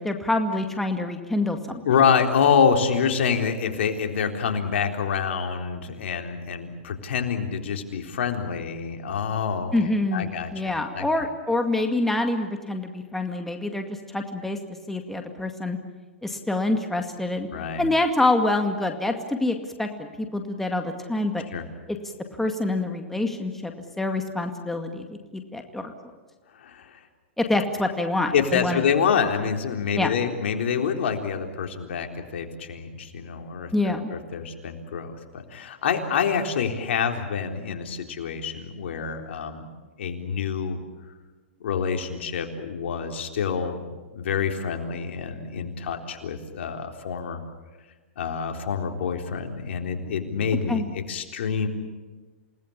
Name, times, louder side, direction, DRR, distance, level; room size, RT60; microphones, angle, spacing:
voice 1, 0.0-1.8 9.7-14.6 14.9-15.8 16.2-17.5 17.8-21.4 21.9-22.0 22.4-23.7 24.0-25.9 27.4-28.8 30.0-30.1 33.7-34.1 50.7-50.9, left 2 dB, 5° left, 4 dB, 2.1 m, -26 dB
voice 2, 1.9-11.2 17.5-17.9 21.5-21.6 26.6-27.0 28.3-39.6 40.0-40.8 41.6-47.4 48.2-51.7, left 6 dB, 70° left, 4 dB, 3.9 m, -27 dB
28.5 x 19.0 x 8.7 m, 1.3 s
hypercardioid pair, 130°, 7 cm